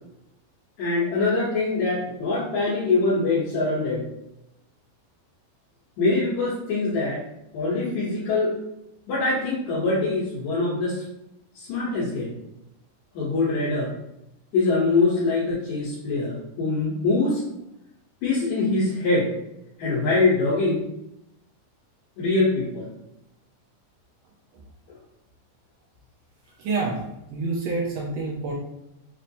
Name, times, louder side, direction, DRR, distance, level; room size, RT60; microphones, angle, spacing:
voice 1, 0.8-4.1 6.0-7.2 7.5-8.6 9.1-11.0 11.6-12.3 13.1-13.9 14.5-17.4 18.2-19.3 19.8-20.8 22.2-22.9 24.9-25.0, left 3 dB, 70° left, -9 dB, 2.2 m, -23 dB
voice 2, 26.6-27.0 27.3-28.5, right 3 dB, 85° right, -3 dB, 1.5 m, -27 dB
6.0 x 2.0 x 2.7 m, 0.84 s
omnidirectional pair, 3.7 m